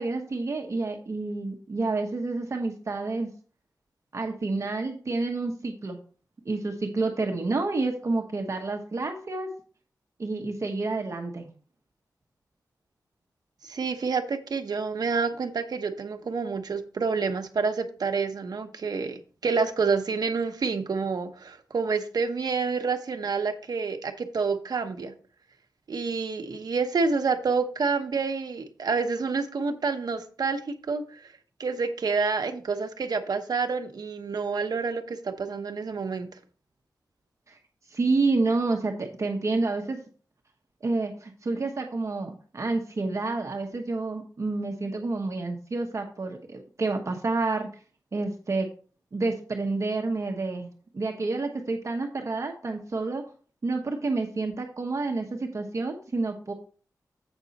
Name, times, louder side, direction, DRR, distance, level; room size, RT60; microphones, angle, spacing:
voice 1, 0.0-3.3 4.1-6.0 6.4-9.5 10.2-11.5 37.5-37.6 37.9-40.0 40.8-47.7 48.1-48.7 49.1-50.7 50.9-53.2 53.6-56.5, right 3 dB, 45° right, 3 dB, 1.1 m, -29 dB
voice 2, 13.6-25.1 25.9-31.2 31.6-36.3, right 4 dB, 70° right, 6 dB, 1.0 m, -28 dB
8.1 x 6.2 x 4.1 m, 0.40 s
wide cardioid pair, 130°, 7 cm